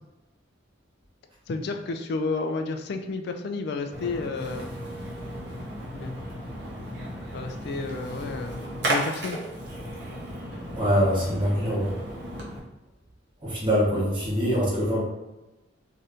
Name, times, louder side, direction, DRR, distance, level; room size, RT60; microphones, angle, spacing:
voice 1, 1.5-4.7 5.9-6.1 7.3-9.4, left 3 dB, 55° left, 6 dB, 0.3 m, -31 dB
Splash splatter, 3.9-12.6, right 1 dB, 60° right, 0.9 m, -34 dB
voice 2, 10.8-11.9 13.5-15.0, equal, 25° right, -6 dB, 1.0 m, -24 dB
2.7 x 2.5 x 3.3 m, 1.0 s
head